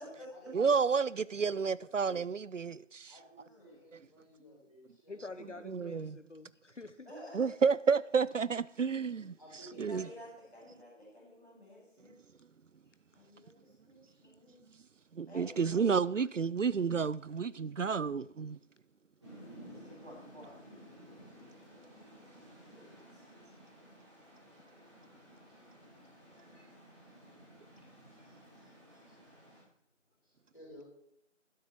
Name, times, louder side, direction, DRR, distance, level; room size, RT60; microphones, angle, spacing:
voice 1, 0.0-2.1 3.1-5.3 9.4-10.2 25.0-25.7 25.9-29.2 29.5-29.7 30.2-30.8, equal, 25° left, 6.5 m, -59 dB
voice 2, 0.5-3.1 5.7-6.2 7.3-9.3 9.8-10.0 15.1-18.6, right 5 dB, 80° right, 0.5 m, -30 dB
voice 3, 3.4-3.8 7.0-7.5 9.9-12.2 13.1-14.6 15.2-16.0 19.6-20.7 21.0-21.1 22.7-23.2, left 1 dB, 5° right, 4.0 m, -52 dB
voice 4, 5.1-7.1 14.2-14.4 23.6-23.7, left 3 dB, 70° left, 0.9 m, -48 dB
sound 1, 19.2-29.6, equal, 25° right, 4.6 m, -55 dB
12.5 x 12.0 x 4.5 m
figure-of-eight pair, 175°, 38 cm